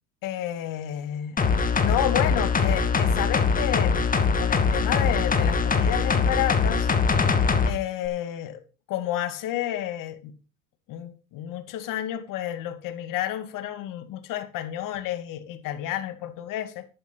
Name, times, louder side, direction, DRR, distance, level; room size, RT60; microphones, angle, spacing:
voice 1, 0.2-1.4 1.8-6.9 7.3-8.6 8.9-10.3 10.9-16.9, left 12 dB, 50° left, 2.4 m, -31 dB
sound 1, 1.4-7.7 8.1-8.2, left 5 dB, 20° left, 2.3 m, -22 dB
11.5 x 11.0 x 4.2 m
hypercardioid pair, 100°, 42 cm